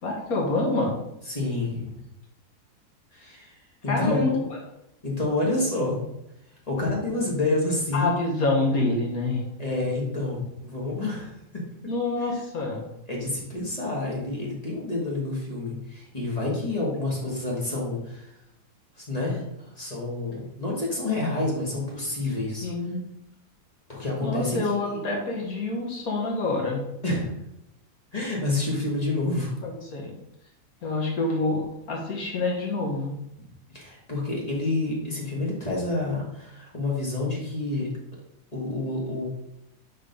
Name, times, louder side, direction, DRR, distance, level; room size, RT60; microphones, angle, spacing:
voice 1, 0.0-1.0 3.9-4.6 7.9-9.4 11.9-12.9 22.6-23.0 24.2-26.8 29.6-30.2 30.8-33.1, left 2 dB, 65° left, -1 dB, 1.7 m, -27 dB
voice 2, 1.3-2.0 3.1-3.5 3.8-4.2 5.0-6.0 6.7-8.1 9.6-11.6 13.1-18.3 19.0-22.7 23.9-25.0 27.0-27.3 28.1-29.5 33.7-37.9 38.5-39.2, left 2 dB, 25° left, -3 dB, 1.7 m, -28 dB
5.0 x 4.4 x 5.2 m, 0.83 s
omnidirectional pair, 1.7 m